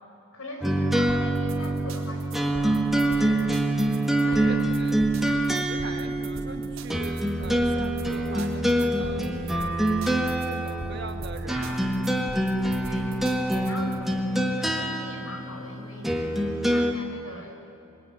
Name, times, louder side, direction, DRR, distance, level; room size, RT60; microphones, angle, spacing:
voice 1, 0.3-3.7 4.1-4.7 5.2-5.5 11.5-11.9 12.8-16.1 16.5-17.7, left 1 dB, 90° left, 3 dB, 4.9 m, -41 dB
sound 1, 0.6-16.9, right 1 dB, ahead, 1.7 m, -25 dB
sound 2, 1.1-13.9, right 2 dB, 85° right, 3.7 m, -41 dB
voice 2, 4.2-5.0 5.5-9.7 10.4-11.7 12.0-12.4, right 3 dB, 50° right, 6 dB, 1.7 m, -41 dB
26.0 x 22.0 x 9.9 m, 2.7 s
head